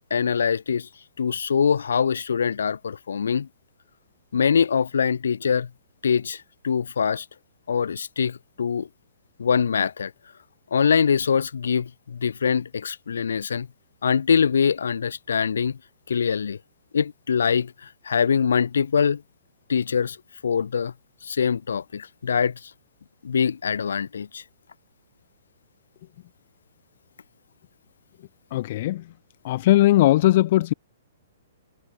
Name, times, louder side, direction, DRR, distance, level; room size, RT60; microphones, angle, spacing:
voice 1, 0.1-0.9 1.2-3.5 4.3-5.7 6.0-7.3 7.7-8.9 9.4-10.1 10.7-13.7 14.0-15.8 16.1-16.6 16.9-17.7 18.1-19.2 19.7-20.2 20.4-20.9 21.2-22.6 23.2-24.4, left 6 dB, 80° left, 2.0 m, -23 dB
voice 2, 28.5-29.1 29.4-30.7, left 15 dB, 50° left, 0.6 m, -19 dB
hypercardioid pair, 135°, 0 cm